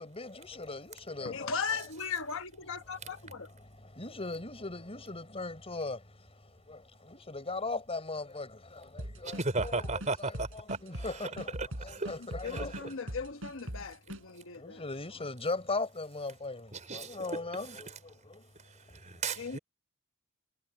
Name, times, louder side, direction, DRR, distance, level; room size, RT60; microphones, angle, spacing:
voice 1, 0.0-1.5 4.0-6.0 7.1-8.5 9.2-10.3 10.8-11.5 12.0-12.7 14.6-16.7 16.9-17.9, left 3 dB, 30° left, 5.1 m, -38 dB
voice 2, 1.2-3.5 12.4-14.9 19.4-19.6, left 5 dB, 65° left, 1.2 m, -37 dB
sound 1, 9.0-14.2, right 1 dB, 70° right, 4.6 m, -41 dB
voice 3, 9.2-11.3 11.6-12.1 12.5-12.7 16.7-17.2 19.0-19.6, right 3 dB, 35° right, 4.2 m, -35 dB
head